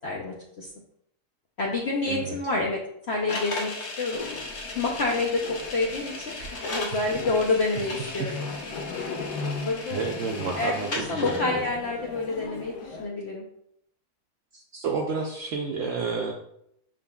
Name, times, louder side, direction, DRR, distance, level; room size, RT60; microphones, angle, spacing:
voice 1, 0.0-0.7 1.6-2.8 3.1-3.7 4.0-4.2 4.7-8.3 9.0-9.3 9.6-10.0 10.5-13.4, left 3 dB, 65° left, -2 dB, 0.6 m, -28 dB
voice 2, 2.0-2.4 6.9-7.0 7.8-8.4 9.9-11.6 14.5-16.3, right 4 dB, 75° right, 1 dB, 0.7 m, -31 dB
sound 1, 3.3-11.4, left 2 dB, 50° left, 0.9 m, -36 dB
sound 2, 4.1-13.1, left 4 dB, 85° left, 1.3 m, -38 dB
5.3 x 3.7 x 2.3 m, 0.73 s
omnidirectional pair, 1.8 m